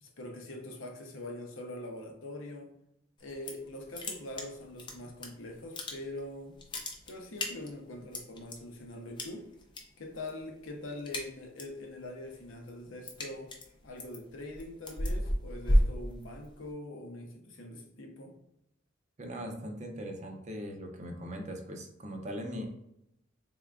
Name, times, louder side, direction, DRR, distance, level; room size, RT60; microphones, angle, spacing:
voice 1, 0.0-2.7 3.2-6.6 7.1-9.5 10.0-13.6 13.8-18.3, left 1 dB, 75° left, 1 dB, 0.7 m, -43 dB
sound 1, 3.2-3.7 3.9-5.3 5.6-6.3 6.5-8.6 9.2-9.8 10.1-10.4 10.7-11.8 12.2-16.7, equal, 25° left, 0.6 m, -32 dB
voice 2, 19.2-22.7, equal, 35° right, 3 dB, 0.6 m, -40 dB
3.7 x 3.4 x 2.3 m, 0.80 s
head